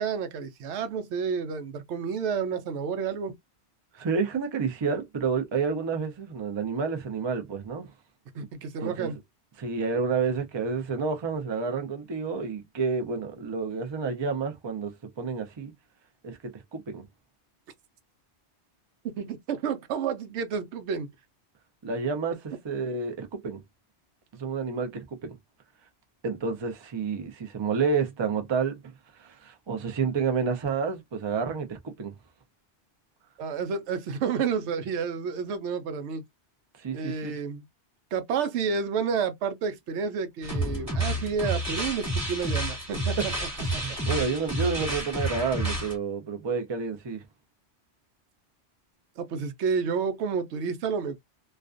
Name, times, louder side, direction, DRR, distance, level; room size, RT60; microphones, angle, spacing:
voice 1, 0.0-3.3 8.4-9.2 19.2-21.1 33.4-36.2 36.9-37.6 38.1-43.3 43.7-43.8 44.6-44.8 49.2-51.2, right 6 dB, 90° right, 0.9 m, -30 dB
voice 2, 3.9-7.9 8.8-9.2 9.6-15.7 16.2-17.0 21.8-23.6 24.4-25.4 26.2-28.9 29.2-32.1 36.8-37.3 43.2-43.3 43.8-47.2, right 5 dB, 35° right, 0.4 m, -30 dB
sound 1, 40.4-46.0, right 1 dB, 15° right, 1.2 m, -30 dB
2.4 x 2.2 x 2.4 m
omnidirectional pair, 1.1 m